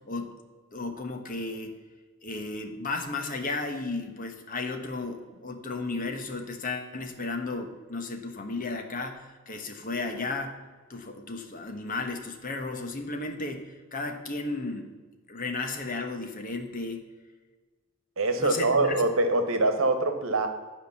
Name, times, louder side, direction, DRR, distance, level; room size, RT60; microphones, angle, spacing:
voice 1, 0.7-1.7 2.2-10.6 10.9-14.9 15.3-17.0 18.4-19.0, left 3 dB, 40° left, 5 dB, 1.2 m, -34 dB
voice 2, 18.2-20.5, right 2 dB, 70° right, 7 dB, 1.2 m, -24 dB
10.5 x 5.1 x 7.0 m, 1.4 s
head